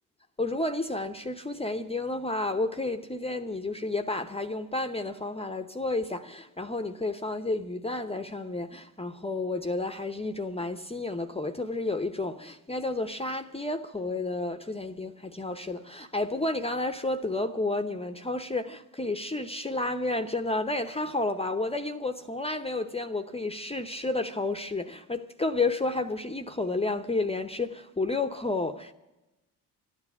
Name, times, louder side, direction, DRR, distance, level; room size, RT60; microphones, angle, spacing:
voice 1, 0.4-28.9, left 2 dB, 15° left, 0.8 m, -31 dB
13.5 x 9.8 x 9.5 m
supercardioid pair, 60°, 42 cm